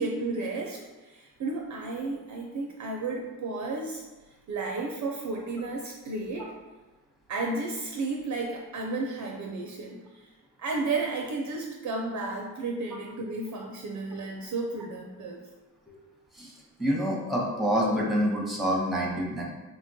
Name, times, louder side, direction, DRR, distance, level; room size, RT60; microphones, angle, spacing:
voice 1, 0.0-4.0 4.5-6.5 7.3-10.3 10.6-15.4, right 3 dB, 45° right, 0 dB, 0.4 m, -33 dB
voice 2, 16.8-19.4, equal, ahead, -2 dB, 0.7 m, -27 dB
3.2 x 2.2 x 2.7 m, 1.2 s
cardioid pair, 70°, 40 cm